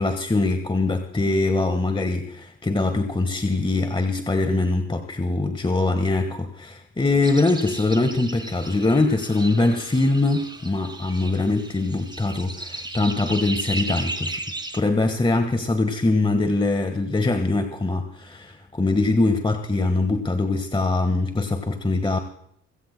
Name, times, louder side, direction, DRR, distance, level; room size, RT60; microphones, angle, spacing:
voice 1, 0.0-14.4 14.7-22.2, left 2 dB, 15° left, 7 dB, 1.6 m, -22 dB
sound 1, 7.2-14.8, right 2 dB, 15° right, 3.1 m, -35 dB
26.5 x 16.0 x 2.3 m, 0.72 s
cardioid pair, 90°, 30 cm